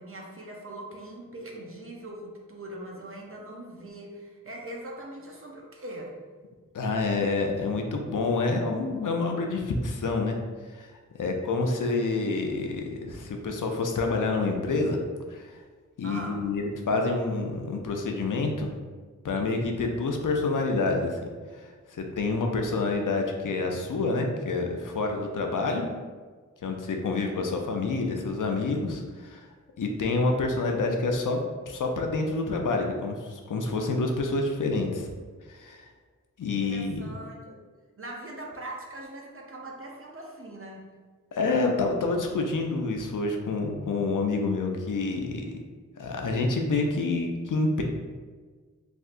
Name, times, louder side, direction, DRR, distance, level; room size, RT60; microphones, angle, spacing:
voice 1, 0.0-6.2 16.0-16.5 36.4-37.6 38.0-40.9, right 1 dB, 45° right, -1 dB, 0.6 m, -41 dB
voice 2, 6.7-10.4 10.7-10.9 11.2-15.0 15.3-15.4 16.0-18.7 19.2-21.2 21.5-25.9 26.6-29.4 29.8-35.1 35.5-35.8 36.4-37.0 41.3-45.6 46.0-47.8, left 3 dB, 80° left, 3 dB, 0.5 m, -28 dB
3.4 x 2.7 x 2.5 m, 1.5 s
wide cardioid pair, 55°, 31 cm